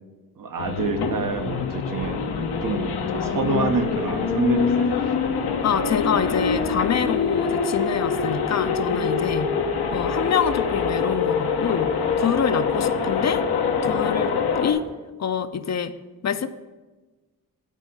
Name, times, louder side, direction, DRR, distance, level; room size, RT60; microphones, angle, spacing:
voice 1, 0.4-5.1, right 4 dB, 60° right, 7 dB, 0.8 m, -27 dB
sound 1, 0.6-14.7, left 5 dB, 85° left, 0.8 m, -24 dB
voice 2, 5.6-9.6 9.9-13.5 13.8-14.8 15.2-15.9 16.2-16.5, left 7 dB, 45° left, 11 dB, 0.5 m, -26 dB
9.3 x 4.2 x 5.3 m, 1.2 s
cardioid pair, 50°, 37 cm